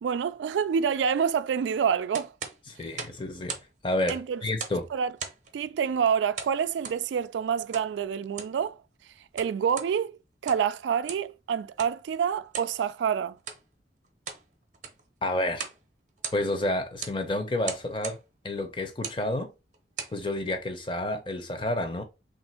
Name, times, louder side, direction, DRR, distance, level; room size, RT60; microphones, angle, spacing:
voice 1, 0.0-2.3 4.1-4.4 4.9-5.1 5.5-8.8 9.3-13.4, right 7 dB, 85° right, 0.3 m, -27 dB
sound 1, 2.1-3.7 4.0-4.9 5.2-5.5 6.4-7.0 7.7-7.9 8.3-8.6 9.2-9.9 10.3-10.7 11.1-11.3 11.8-12.0 12.5-12.7 13.4-13.6 14.0-14.5 14.7-15.1 15.5-15.8 16.1-16.6 17.0-17.2 17.6-18.2 18.9-19.2 19.7-20.2, right 6 dB, 45° right, 0.7 m, -38 dB
voice 2, 2.7-3.5 3.8-4.9 15.2-15.7 16.3-18.2 18.4-19.5 20.1-22.0, left 1 dB, 30° left, 0.6 m, -30 dB
3.4 x 2.5 x 4.2 m
head